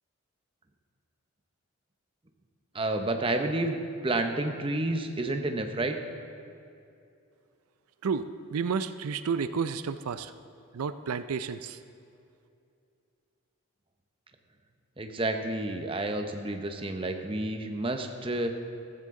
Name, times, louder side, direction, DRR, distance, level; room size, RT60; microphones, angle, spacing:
voice 1, 2.7-6.0 15.0-18.5, right 2 dB, 25° right, 5 dB, 0.8 m, -30 dB
voice 2, 8.0-10.3 10.7-11.8, right 5 dB, 85° right, 12 dB, 0.4 m, -31 dB
14.5 x 14.0 x 3.7 m, 2.6 s
head